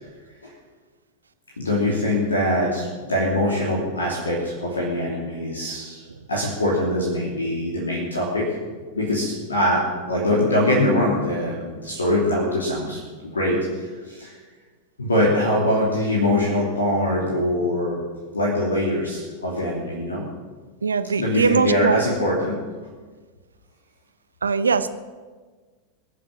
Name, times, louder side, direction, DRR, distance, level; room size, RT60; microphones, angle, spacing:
voice 1, 1.6-6.0 6.3-8.5 8.9-14.3 15.0-18.0 18.3-20.3 21.2-22.5, left 1 dB, 75° left, -3 dB, 2.9 m, -23 dB
voice 2, 20.8-22.0 24.4-24.9, right 5 dB, 75° right, 13 dB, 0.8 m, -21 dB
22.5 x 7.5 x 7.3 m, 1.4 s
figure-of-eight pair, 90°, 0 cm